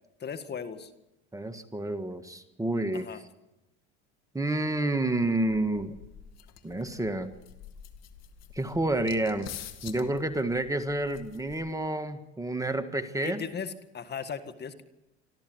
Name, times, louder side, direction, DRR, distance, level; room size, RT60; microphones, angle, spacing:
voice 1, 0.2-0.9 2.9-3.2 13.2-14.8, left 6 dB, 30° left, 9 dB, 1.8 m, -37 dB
voice 2, 1.3-3.2 4.3-6.0 6.6-7.3 8.5-9.5 9.8-13.4, right 2 dB, 10° right, 9 dB, 1.6 m, -29 dB
sound 1, 5.2-11.9, left 9 dB, 50° left, 2.2 m, -47 dB
26.0 x 13.5 x 7.9 m, 0.95 s
hypercardioid pair, 90°, 32 cm